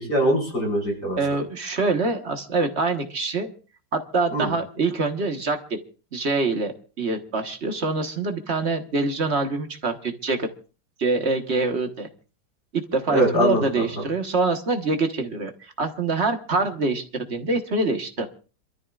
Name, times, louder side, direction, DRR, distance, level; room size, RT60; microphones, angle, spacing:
voice 1, 0.1-1.2 4.3-4.5 13.1-13.8, equal, 70° left, -1 dB, 6.2 m, -22 dB
voice 2, 1.2-3.5 3.9-5.8 6.1-10.5 11.0-12.1 12.7-18.3, right 3 dB, 40° right, 5 dB, 1.6 m, -25 dB
27.5 x 13.0 x 2.5 m, 0.36 s
omnidirectional pair, 1.9 m